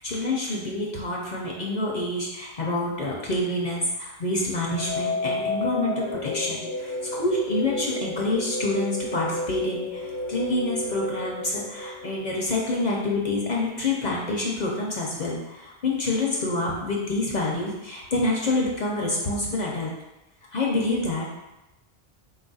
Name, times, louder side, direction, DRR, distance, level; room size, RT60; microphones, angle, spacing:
voice 1, 0.0-19.9 20.5-21.3, left 2 dB, 50° left, -2 dB, 0.7 m, -27 dB
sound 1, 4.7-12.7, left 2 dB, 85° left, 0.8 m, -32 dB
4.1 x 2.4 x 4.0 m, 0.97 s
omnidirectional pair, 1.0 m